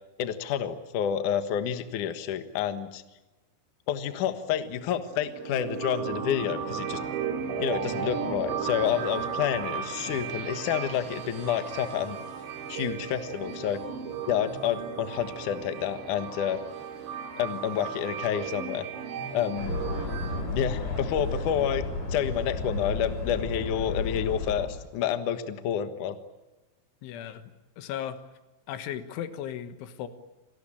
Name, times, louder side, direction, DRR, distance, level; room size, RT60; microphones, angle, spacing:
voice 1, 0.2-3.0 3.9-7.0 7.6-12.2 12.7-13.8 14.3-16.6 17.4-18.9 19.3-19.7 20.5-26.2, left 9 dB, 60° left, 9 dB, 2.2 m, -29 dB
sound 1, 5.0-20.4, right 7 dB, 65° right, 4.8 m, -35 dB
voice 2, 10.1-10.4 27.0-27.5 27.8-28.2 28.7-30.1, left 10 dB, 85° left, 10 dB, 3.8 m, -36 dB
sound 2, 19.6-24.7, left 3 dB, 40° left, 8.1 m, -32 dB
28.0 x 19.0 x 8.7 m, 1.1 s
omnidirectional pair, 5.4 m